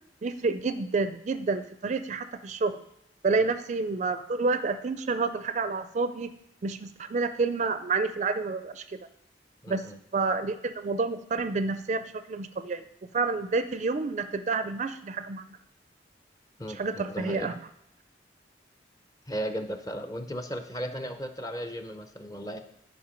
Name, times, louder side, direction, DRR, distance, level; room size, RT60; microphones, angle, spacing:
voice 1, 0.2-2.8 3.2-6.3 6.6-9.0 9.7-9.8 10.1-12.8 13.1-15.4 16.7-17.5, right 4 dB, 40° right, 11 dB, 0.4 m, -29 dB
voice 2, 9.6-10.0 16.6-17.5 19.3-22.6, equal, 20° left, 8 dB, 0.6 m, -36 dB
10.0 x 5.2 x 5.1 m, 0.77 s
head